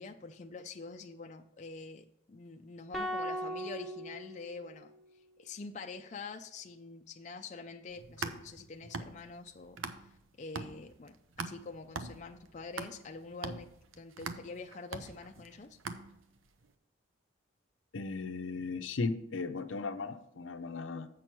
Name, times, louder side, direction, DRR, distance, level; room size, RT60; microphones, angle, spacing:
voice 1, 0.0-4.9 5.4-13.7 14.0-15.8, left 4 dB, 35° left, 4 dB, 0.4 m, -46 dB
sound 1, 2.9-5.3, equal, ahead, 0.9 m, -39 dB
sound 2, 7.9-10.2 10.6-16.5, right 4 dB, 90° right, 0.7 m, -42 dB
voice 2, 17.9-21.1, left 3 dB, 80° left, 9 dB, 0.7 m, -36 dB
7.7 x 6.1 x 4.5 m, 0.81 s
head